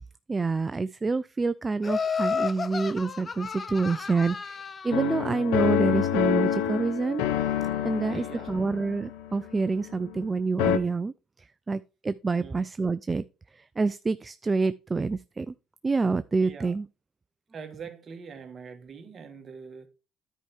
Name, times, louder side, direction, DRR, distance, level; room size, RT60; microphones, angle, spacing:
voice 1, 0.3-7.2 7.8-13.2 13.5-15.5 15.8-16.9, right 4 dB, 25° right, 0.3 m, -27 dB
Laughter, 1.8-5.0, left 5 dB, 35° left, 0.5 m, -32 dB
sound 1, 4.9-10.3 10.6-10.8, left 9 dB, 85° left, 0.7 m, -28 dB
voice 2, 8.1-8.5 12.3-12.6 16.4-16.7 17.5-19.9, right 6 dB, 40° right, 1.6 m, -43 dB
10.0 x 4.7 x 4.4 m
supercardioid pair, 80°, 0 cm